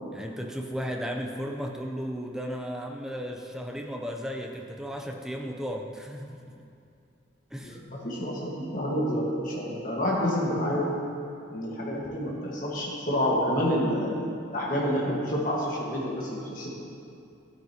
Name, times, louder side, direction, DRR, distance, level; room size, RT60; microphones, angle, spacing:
voice 1, 0.1-6.5 7.5-7.8, equal, 5° right, 2 dB, 0.5 m, -35 dB
voice 2, 7.6-10.9 11.5-14.3 14.5-16.8, equal, 45° left, -5 dB, 1.6 m, -28 dB
13.0 x 9.6 x 2.9 m, 2.5 s
head